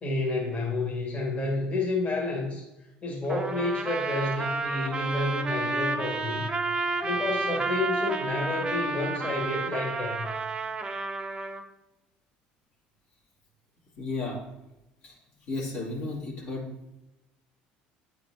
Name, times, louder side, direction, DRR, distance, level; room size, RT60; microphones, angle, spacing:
voice 1, 0.0-2.6 3.0-6.5 7.0-10.3, left 2 dB, 40° left, -3 dB, 1.8 m, -30 dB
Trumpet, 3.3-11.6, right 3 dB, 25° right, 0.7 m, -31 dB
voice 2, 14.0-14.4 15.0-15.2 15.5-16.7, left 2 dB, 65° left, -4 dB, 2.1 m, -33 dB
8.9 x 4.3 x 2.8 m, 0.94 s
supercardioid pair, 90°, 4 cm